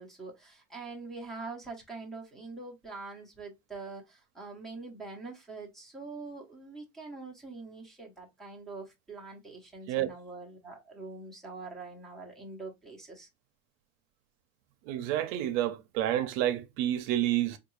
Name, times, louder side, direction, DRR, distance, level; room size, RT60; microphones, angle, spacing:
voice 1, 0.0-13.3, right 3 dB, ahead, 0.7 m, -44 dB
voice 2, 14.9-17.6, right 12 dB, 60° right, 0.7 m, -29 dB
3.6 x 2.4 x 3.0 m
supercardioid pair, 135°, 41 cm